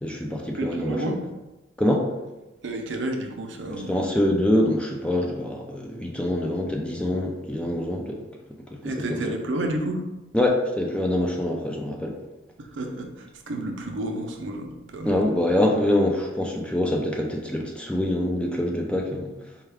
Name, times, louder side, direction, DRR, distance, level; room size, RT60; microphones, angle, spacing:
voice 1, 0.0-1.1 1.8-2.1 3.9-8.2 8.7-8.8 9.1-9.2 10.3-12.2 15.0-19.3, left 1 dB, 5° left, 0 dB, 0.3 m, -25 dB
voice 2, 0.6-1.2 2.6-4.0 8.8-10.1 12.6-15.3, right 1 dB, 70° right, 3 dB, 0.5 m, -31 dB
4.5 x 2.3 x 3.4 m, 1.1 s
head